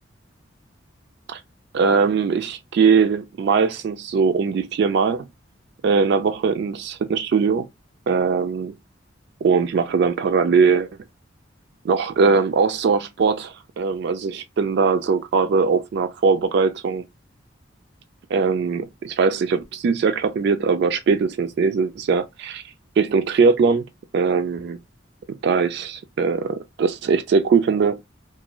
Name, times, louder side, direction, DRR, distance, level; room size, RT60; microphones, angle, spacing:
voice 1, 1.7-5.3 5.8-7.7 8.1-8.7 9.4-10.9 11.8-17.0 18.3-22.6 23.0-23.8 24.1-24.8 25.4-28.0, right 5 dB, 60° right, 0.3 m, -20 dB
2.5 x 2.2 x 2.9 m
head